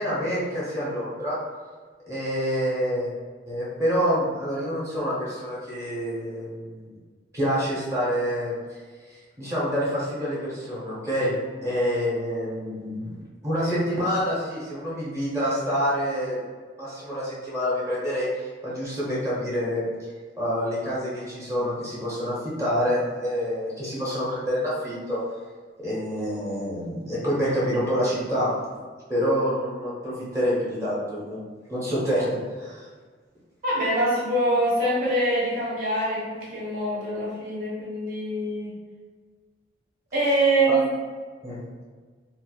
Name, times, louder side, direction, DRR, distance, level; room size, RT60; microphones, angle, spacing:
voice 1, 0.0-1.4 2.1-3.1 3.5-6.9 7.3-8.5 9.1-11.3 11.6-13.2 13.4-16.4 16.8-19.8 20.4-25.2 25.8-28.5 29.1-31.4 31.7-32.9 40.7-40.8 41.4-41.6, equal, 15° right, -8 dB, 0.9 m, -27 dB
voice 2, 33.6-38.7 40.1-40.9, right 1 dB, 50° right, -8 dB, 1.3 m, -24 dB
4.3 x 2.1 x 2.3 m, 1.5 s
head